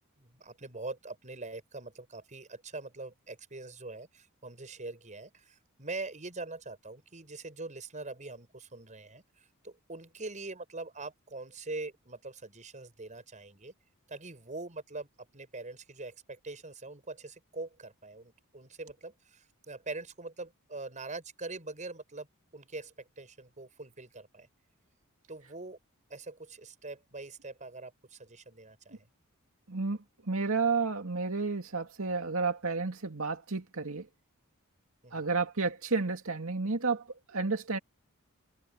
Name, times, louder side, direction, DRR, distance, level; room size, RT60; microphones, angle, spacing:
voice 1, 0.2-13.7 14.1-22.3 22.5-24.5 25.3-25.8 26.1-29.0 35.0-35.3, right 3 dB, 35° right, 6.4 m, -43 dB
voice 2, 30.3-34.1 35.1-37.8, right 4 dB, 65° right, 2.4 m, -31 dB
head